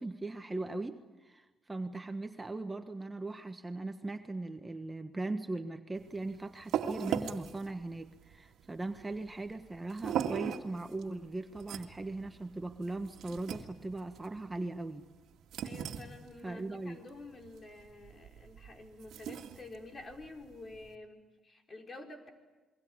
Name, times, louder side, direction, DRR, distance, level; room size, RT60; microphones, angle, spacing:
voice 1, 0.0-15.1 16.4-17.0, right 2 dB, 15° right, 6 dB, 1.5 m, -39 dB
sound 1, 6.0-20.9, right 9 dB, 80° right, 2.0 m, -41 dB
voice 2, 15.6-22.3, left 2 dB, 35° left, 3 dB, 4.9 m, -49 dB
28.0 x 23.0 x 8.8 m, 1.2 s
cardioid pair, 90°, 0 cm